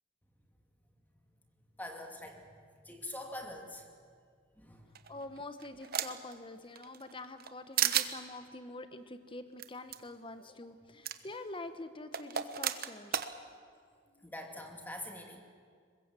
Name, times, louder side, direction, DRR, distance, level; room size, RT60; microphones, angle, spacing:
voice 1, 1.8-3.9 4.6-5.0 14.2-15.4, left 1 dB, 10° left, 3 dB, 2.3 m, -45 dB
sound 1, 4.9-6.3 6.8-7.5 7.8-8.1 9.6-9.7 9.9-10.0 11.0-11.2 12.1-13.3, right 10 dB, 50° right, 1.1 m, -32 dB
voice 2, 5.1-13.2 14.1-14.3, left 2 dB, 25° left, 10 dB, 1.2 m, -46 dB
23.5 x 21.0 x 7.6 m, 2.1 s
head